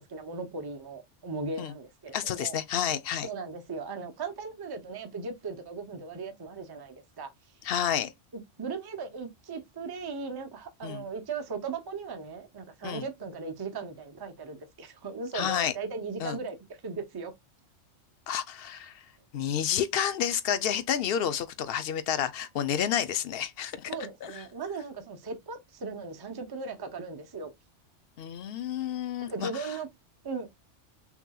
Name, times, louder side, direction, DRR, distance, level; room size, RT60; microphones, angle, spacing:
voice 1, 0.0-2.6 3.2-7.3 8.3-16.6 16.8-17.3 23.9-27.5 29.2-29.9 30.2-30.5, right 4 dB, 25° right, 0.6 m, -37 dB
voice 2, 2.1-3.3 7.6-8.1 10.8-11.1 12.8-13.0 15.3-15.7 16.2-16.4 18.3-18.9 19.3-23.9 24.2-24.4 28.2-29.7, left 9 dB, 60° left, 0.7 m, -30 dB
5.9 x 2.8 x 2.3 m
omnidirectional pair, 1.2 m